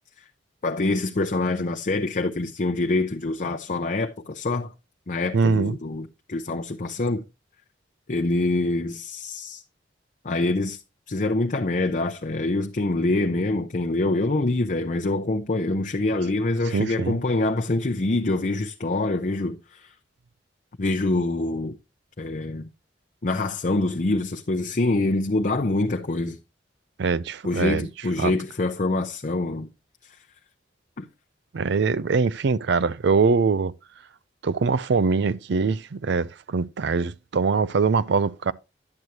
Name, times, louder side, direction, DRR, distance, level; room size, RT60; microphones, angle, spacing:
voice 1, 0.6-4.7 5.1-7.2 8.1-9.6 10.2-10.8 11.1-19.9 20.8-21.8 22.2-22.7 23.2-26.4 27.4-29.7 31.0-31.1, left 2 dB, 45° left, 0.7 m, -25 dB
voice 2, 5.3-5.8 16.7-17.2 27.0-27.9 28.2-28.3 31.5-33.7 34.4-38.5, right 4 dB, 65° right, 0.5 m, -23 dB
10.5 x 7.9 x 2.8 m
head